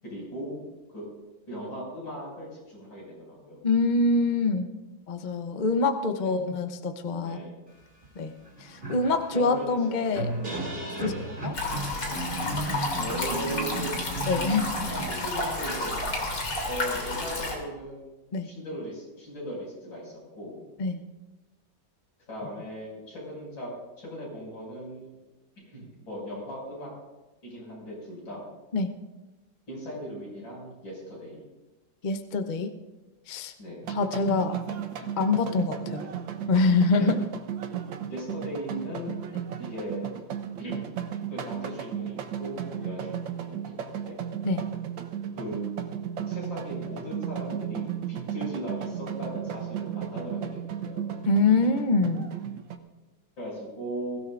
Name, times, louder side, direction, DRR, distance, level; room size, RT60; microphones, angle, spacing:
voice 1, 0.0-0.6 0.9-1.1 1.5-3.6 6.2-6.4 7.2-7.6 9.3-10.1 10.3-10.7 10.9-11.3 12.9-14.2 14.9-15.9 16.7-20.6 22.3-23.7 24.0-25.2 25.6-26.9 27.4-28.4 29.7-31.4 33.6-33.8 36.0-36.2 36.9-37.1 38.1-40.1 40.6-40.9 41.3-44.2 45.4-45.6 46.3-51.0 53.4-54.2, equal, 85° left, -4 dB, 7.0 m, -38 dB
voice 2, 3.6-4.7 5.1-7.4 8.2-8.3 8.9-10.3 11.0-11.1 11.4-11.5 14.3-14.7 18.3-18.5 20.8-21.0 28.7-28.9 32.0-32.7 33.3-33.5 33.9-34.5 35.2-36.0 36.5-37.2 44.4-44.6 51.3-52.3, left 3 dB, 40° left, 7 dB, 0.6 m, -24 dB
sound 1, 8.0-8.1 8.5-16.5, right 2 dB, 30° right, 2.8 m, -35 dB
sound 2, 11.5-17.6, left 2 dB, 70° left, 3.3 m, -31 dB
sound 3, 33.8-52.8, right 9 dB, 85° right, 1.7 m, -35 dB
22.0 x 16.0 x 2.5 m, 1.1 s
omnidirectional pair, 2.0 m